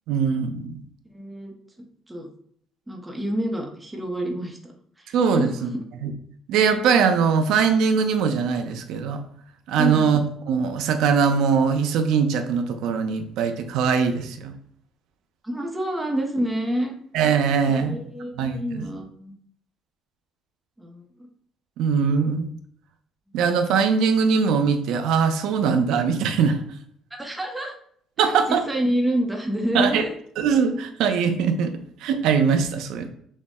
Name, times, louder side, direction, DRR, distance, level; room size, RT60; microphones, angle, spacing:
voice 1, 0.1-0.8 5.1-5.7 6.0-6.1 6.5-9.2 9.7-10.2 10.5-14.5 17.1-18.0 18.4-18.9 21.8-22.5 23.3-26.6 28.2-28.6 29.7-30.0 30.4-33.1, right 6 dB, 75° right, 6 dB, 0.5 m, -21 dB
voice 2, 1.1-1.5 2.1-2.3 2.9-4.7 5.0-5.7 9.8-10.1 15.4-16.9 17.7-19.3 20.8-21.0 27.1-27.8 28.2-30.1, equal, 10° right, 1 dB, 0.7 m, -28 dB
6.2 x 2.1 x 3.5 m, 0.63 s
cardioid pair, 170°, 0 cm